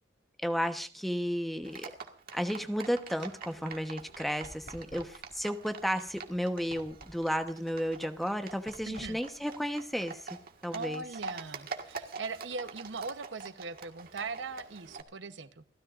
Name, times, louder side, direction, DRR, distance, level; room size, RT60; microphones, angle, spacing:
voice 1, 0.4-1.9 2.3-10.4 10.6-11.0, equal, ahead, 7 dB, 1.0 m, -33 dB
Livestock farm animals working animals, 1.6-15.0, right 4 dB, 55° right, 1.7 m, -46 dB
sound 1, 2.8-10.4, equal, 55° left, 3.9 m, -54 dB
voice 2, 8.9-9.2 10.7-15.7, right 3 dB, 75° right, 11 dB, 0.9 m, -40 dB
29.0 x 13.5 x 2.5 m, 0.35 s
head